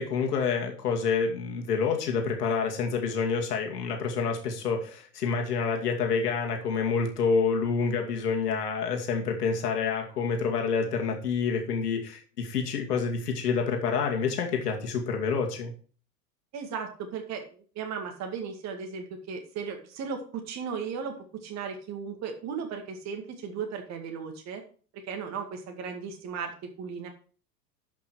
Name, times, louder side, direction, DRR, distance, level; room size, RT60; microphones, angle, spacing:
voice 1, 0.0-15.7, left 5 dB, 65° left, 2 dB, 2.5 m, -28 dB
voice 2, 16.5-24.6 25.1-27.1, right 6 dB, 30° right, 4 dB, 2.1 m, -36 dB
12.0 x 6.0 x 4.8 m, 0.40 s
figure-of-eight pair, 95°, 50 cm